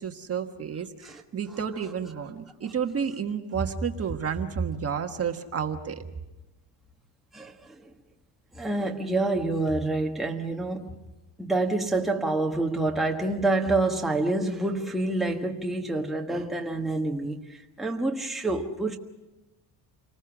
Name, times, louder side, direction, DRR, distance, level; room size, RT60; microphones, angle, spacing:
voice 1, 0.0-6.1, right 6 dB, 35° right, 1.4 m, -31 dB
voice 2, 7.3-7.9 8.5-11.0 11.4-19.0, right 2 dB, ahead, 1.4 m, -27 dB
28.5 x 20.0 x 6.2 m
cardioid pair, 140°, 43 cm